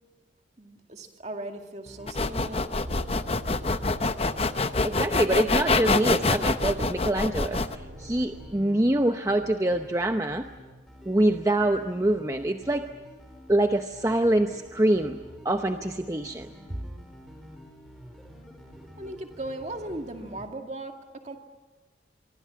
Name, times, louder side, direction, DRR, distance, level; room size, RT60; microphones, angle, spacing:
voice 1, 0.6-2.7 19.0-21.4, right 1 dB, 35° right, 4 dB, 2.2 m, -38 dB
sound 1, 1.8-20.5, equal, ahead, 4.1 m, -49 dB
sound 2, 2.1-7.8, left 3 dB, 30° left, 0.8 m, -25 dB
sound 3, 2.8-8.6, equal, 70° right, 3.7 m, -44 dB
voice 2, 4.8-10.5 11.0-12.8 13.5-15.2 15.4-16.5, right 1 dB, 15° right, 6 dB, 0.7 m, -25 dB
25.0 x 24.0 x 7.6 m, 1.3 s
head